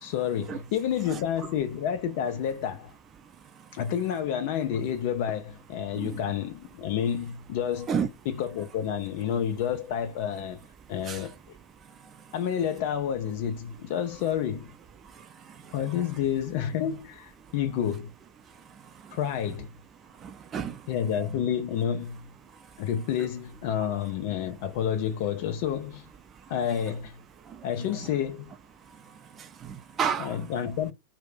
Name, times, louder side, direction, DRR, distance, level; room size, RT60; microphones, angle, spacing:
voice 1, 0.0-2.9 3.7-10.6 10.9-11.3 12.3-14.7 15.7-18.1 19.1-19.7 20.9-22.3 22.8-26.1 26.5-27.2 27.6-28.5 30.2-30.9, left 9 dB, 50° left, 0.3 m, -29 dB
voice 2, 20.2-20.8 27.5-27.6 29.4-30.3, right 7 dB, 25° right, 0.4 m, -31 dB
2.3 x 2.0 x 3.5 m
figure-of-eight pair, 90°, 0 cm